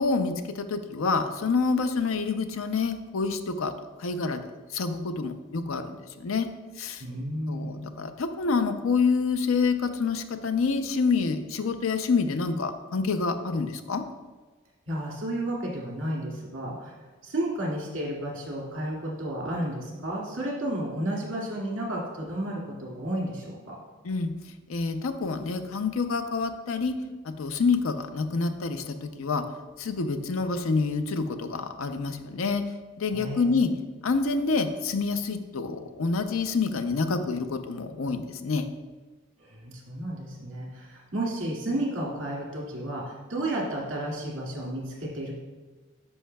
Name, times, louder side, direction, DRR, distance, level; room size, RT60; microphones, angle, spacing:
voice 1, 0.0-3.7 4.0-4.4 4.7-6.5 6.8-7.0 7.5-14.0 24.0-24.3 24.7-27.0 27.4-29.4 29.8-32.6 33.0-33.7 34.0-38.7, left 4 dB, 90° left, 9 dB, 0.5 m, -27 dB
voice 2, 7.0-7.9 14.9-16.9 17.2-23.8 33.1-33.7 39.4-45.3, right 1 dB, 70° right, -3 dB, 2.0 m, -32 dB
9.8 x 5.6 x 2.2 m, 1.2 s
head